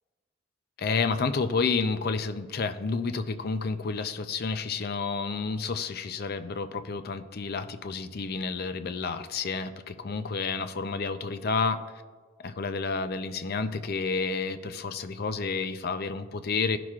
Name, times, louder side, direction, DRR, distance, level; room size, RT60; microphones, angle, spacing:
voice 1, 0.8-12.0 12.4-16.8, left 4 dB, 55° left, 10 dB, 0.5 m, -30 dB
16.0 x 5.8 x 2.4 m, 1.5 s
head